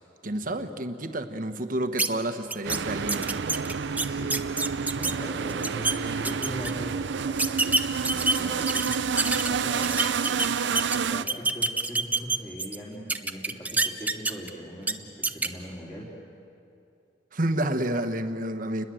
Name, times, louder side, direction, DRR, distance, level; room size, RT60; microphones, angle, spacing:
voice 1, 0.2-3.4 17.3-18.8, right 1 dB, 50° right, 8 dB, 1.3 m, -29 dB
sound 1, 2.0-2.1 2.5-2.8 3.1-5.1 5.5-5.9 6.2-6.7 7.4-9.5 9.8-11.0 11.3-12.8 13.1-14.5 14.8-14.9 15.2-15.5, right 3 dB, 10° right, 0.8 m, -26 dB
sound 2, 2.6-11.2, right 6 dB, 80° right, 0.6 m, -29 dB
voice 2, 4.0-4.4 5.0-16.1, equal, 20° left, -5 dB, 3.7 m, -40 dB
29.5 x 21.5 x 7.8 m, 2.6 s
head